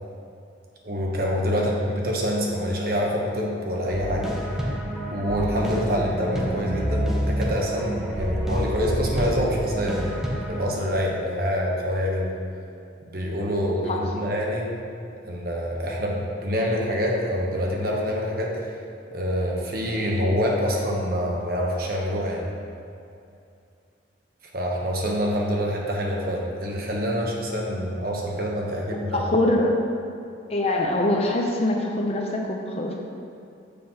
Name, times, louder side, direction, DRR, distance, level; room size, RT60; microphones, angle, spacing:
voice 1, 0.8-4.3 5.1-10.1 10.5-12.4 13.1-14.7 15.2-18.5 19.1-22.4 24.5-29.2, equal, 55° right, -2 dB, 1.0 m, -26 dB
sound 1, 3.9-10.6, right 1 dB, ahead, 0.7 m, -28 dB
voice 2, 29.1-29.8 30.5-33.0, left 1 dB, 35° left, 0 dB, 0.6 m, -23 dB
6.7 x 4.1 x 5.6 m, 2.5 s
head